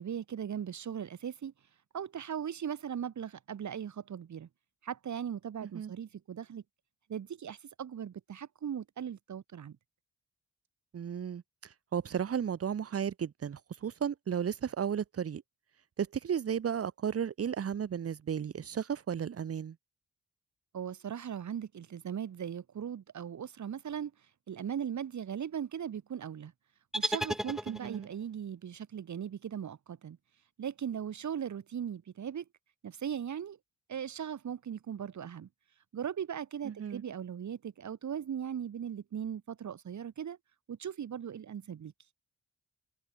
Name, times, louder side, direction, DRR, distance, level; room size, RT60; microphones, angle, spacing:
voice 1, 0.0-1.5 1.9-4.5 4.8-6.6 7.1-9.8 20.7-24.1 24.5-26.5 26.9-30.2 30.6-32.4 32.8-33.6 33.9-35.5 35.9-40.4 40.7-41.9, right 8 dB, 70° right, 2.7 m, -38 dB
voice 2, 5.6-5.9 10.9-11.4 11.9-15.4 16.0-19.7 27.7-28.1 36.6-37.0, right 8 dB, 50° right, 1.2 m, -34 dB
sound 1, 26.9-28.2, equal, ahead, 0.6 m, -34 dB
wide cardioid pair, 155°, 30 cm